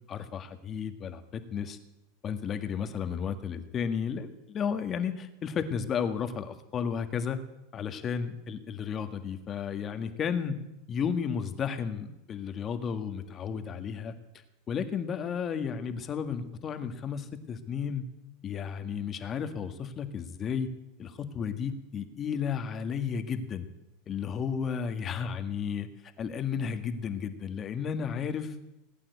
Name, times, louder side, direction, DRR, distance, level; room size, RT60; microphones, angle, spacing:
voice 1, 0.1-1.8 2.2-7.4 7.7-10.6 10.9-14.1 14.7-18.0 18.4-20.7 21.0-23.7 24.1-25.9 26.2-28.5, left 7 dB, 30° left, 8 dB, 1.7 m, -33 dB
19.0 x 9.1 x 8.2 m, 0.91 s
supercardioid pair, 130°, 0 cm